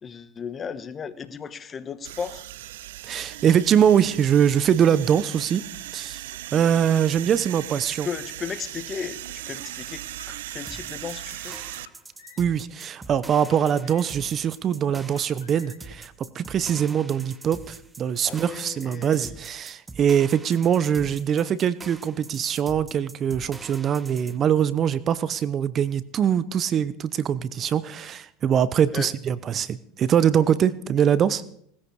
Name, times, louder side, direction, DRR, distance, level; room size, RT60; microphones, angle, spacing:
voice 1, 0.0-2.4 8.0-11.6 18.2-19.3 28.9-29.1, left 6 dB, 30° left, 1.4 m, -35 dB
sound 1, 2.0-11.9, right 15 dB, 80° right, 0.5 m, -38 dB
voice 2, 3.0-5.7 5.9-8.1 12.4-31.4, right 8 dB, 40° right, 0.8 m, -23 dB
Car, 8.4-9.4 10.0-11.1 11.7-12.7 13.3-14.4 15.0-15.9, left 7 dB, 90° left, 2.5 m, -53 dB
sound 2, 10.7-24.4, right 3 dB, 15° right, 1.4 m, -44 dB
19.0 x 14.5 x 4.8 m
hypercardioid pair, 95°, 0 cm